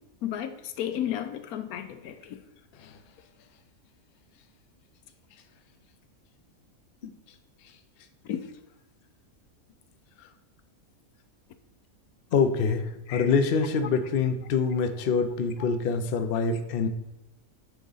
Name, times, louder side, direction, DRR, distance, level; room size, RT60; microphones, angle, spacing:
voice 1, 0.2-2.4 8.3-8.4 13.1-13.3, left 10 dB, 85° left, 1.1 m, -33 dB
voice 2, 12.3-16.9, left 5 dB, 55° left, 0.7 m, -25 dB
10.0 x 4.1 x 3.9 m
omnidirectional pair, 1.5 m